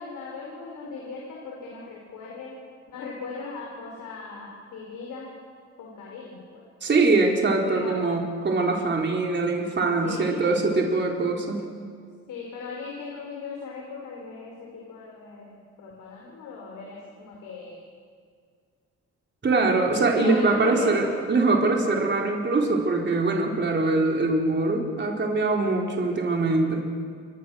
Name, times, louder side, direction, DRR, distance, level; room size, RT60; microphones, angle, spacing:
voice 1, 0.0-2.6 2.9-5.3 5.8-6.6 7.6-8.1 10.0-10.6 12.3-17.8 19.7-21.2, left 4 dB, 85° left, -2 dB, 4.9 m, -38 dB
voice 2, 6.8-11.7 19.4-26.8, right 3 dB, 35° right, 0 dB, 4.2 m, -23 dB
28.5 x 24.0 x 6.5 m, 2.1 s
cardioid pair, 90°, 30 cm